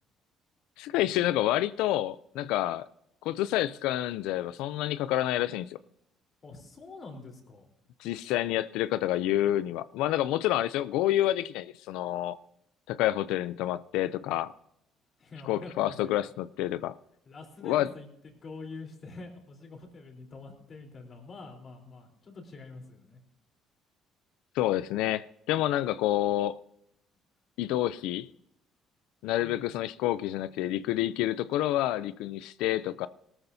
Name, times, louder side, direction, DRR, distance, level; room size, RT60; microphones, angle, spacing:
voice 1, 0.8-2.8 3.2-5.8 8.0-12.4 12.9-14.5 15.5-16.9 17.6-17.9 24.6-26.6 27.6-28.3 29.2-33.1, left 14 dB, 85° left, 0.4 m, -28 dB
voice 2, 6.4-7.7 15.2-16.2 17.3-18.1 18.4-23.2 29.4-29.8, left 3 dB, 45° left, 3.7 m, -46 dB
18.0 x 13.5 x 2.7 m
cardioid pair, 90°, 0 cm